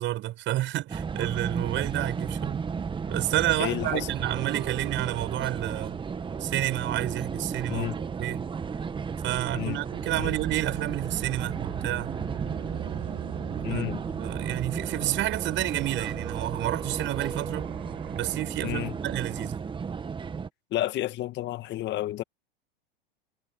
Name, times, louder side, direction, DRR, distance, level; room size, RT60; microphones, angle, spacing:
voice 1, 0.0-2.6 3.1-6.0 6.4-7.9 8.2-8.4 9.2-12.1 13.7-13.9 14.2-17.7 18.1-19.6, right 15 dB, 40° right, 5.7 m, -30 dB
sound 1, 0.9-20.5, right 6 dB, 15° right, 1.4 m, -34 dB
voice 2, 3.6-4.1 7.7-8.0 9.5-9.8 10.2-10.4 13.6-14.0 18.6-18.9 20.7-22.2, left 15 dB, 40° left, 1.8 m, -31 dB
sound 2, 4.2-18.4, right 27 dB, 60° right, 7.5 m, -42 dB
hypercardioid pair, 105°, 29 cm